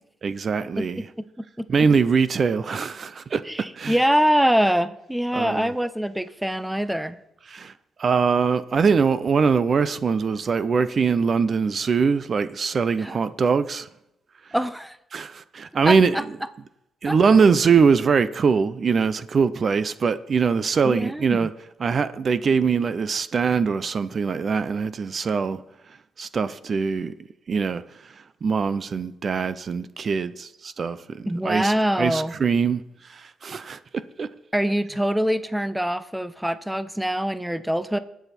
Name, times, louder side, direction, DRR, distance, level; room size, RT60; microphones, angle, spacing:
voice 1, 0.2-1.1 1.7-4.0 5.3-5.7 7.5-7.7 8.0-13.9 15.1-16.2 17.0-21.5 21.8-25.6 26.2-27.1 27.5-27.8 28.4-32.8 33.1-33.8 34.2-34.3, right 5 dB, 45° right, 0.6 m, -22 dB
voice 2, 3.5-7.2 13.0-13.1 14.5-15.0 15.9-16.2 17.0-17.5 20.8-21.5 31.3-32.4 34.5-38.0, equal, 5° right, 0.6 m, -24 dB
20.0 x 7.1 x 4.4 m
cardioid pair, 90°, 0 cm